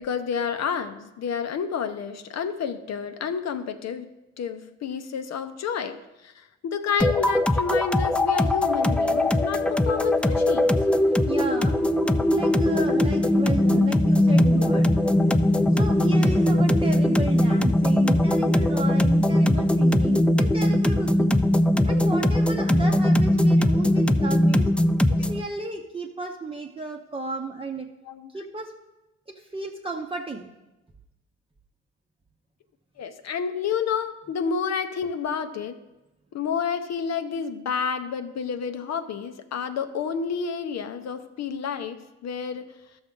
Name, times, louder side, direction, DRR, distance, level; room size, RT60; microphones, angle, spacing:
voice 1, 0.0-4.1 4.4-10.7 25.2-25.3 28.1-28.3 33.0-35.8 36.3-42.7, left 6 dB, 60° left, 9 dB, 0.7 m, -30 dB
sound 1, 7.0-25.4, left 1 dB, 5° left, 0.3 m, -20 dB
sound 2, 8.6-22.8, left 8 dB, 35° left, 1.0 m, -38 dB
voice 2, 11.3-11.8 12.3-14.9 15.7-21.4 21.9-24.7 25.2-27.9 28.3-28.7 29.3-30.5, right 3 dB, 20° right, 1 dB, 0.7 m, -34 dB
13.0 x 6.3 x 3.8 m, 1.0 s
cardioid pair, 90°, 30 cm